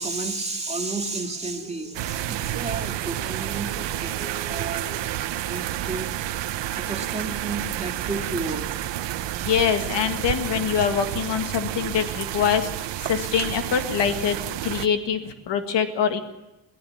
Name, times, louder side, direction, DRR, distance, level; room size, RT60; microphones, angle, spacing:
voice 1, 0.0-5.0 5.3-6.1 6.8-8.7, right 3 dB, 15° right, 2 dB, 2.2 m, -32 dB
sound 1, 1.9-14.9, right 12 dB, 85° right, 1.0 m, -30 dB
voice 2, 9.5-12.7 13.1-14.4 14.6-16.2, left 7 dB, 85° left, 7 dB, 2.1 m, -24 dB
23.0 x 16.0 x 7.2 m, 0.99 s
cardioid pair, 160°, 42 cm